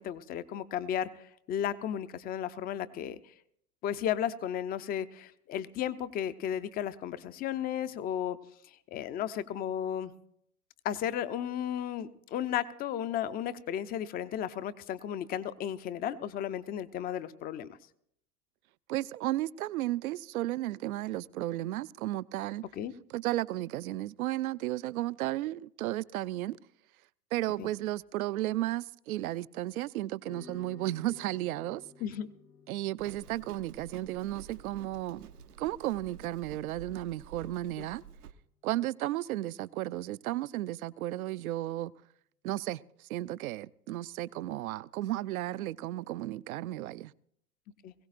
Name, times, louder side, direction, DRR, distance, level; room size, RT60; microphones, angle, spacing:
voice 1, 0.0-3.2 3.8-8.4 8.9-10.1 10.8-17.7 22.8-22.9 27.6-27.7 32.0-32.3 37.8-37.9 47.8-47.9, left 10 dB, 20° left, 0.4 m, -34 dB
voice 2, 18.9-22.6 23.1-26.6 27.3-31.9 32.7-35.3 35.6-38.0 38.6-41.9 42.4-47.1, right 15 dB, 70° right, 0.5 m, -34 dB
sound 1, 30.2-38.8, left 5 dB, 80° left, 1.5 m, -57 dB
Livestock farm animals working animals, 33.0-38.3, right 8 dB, 85° right, 0.9 m, -50 dB
21.5 x 16.5 x 2.5 m
hypercardioid pair, 95°, 45 cm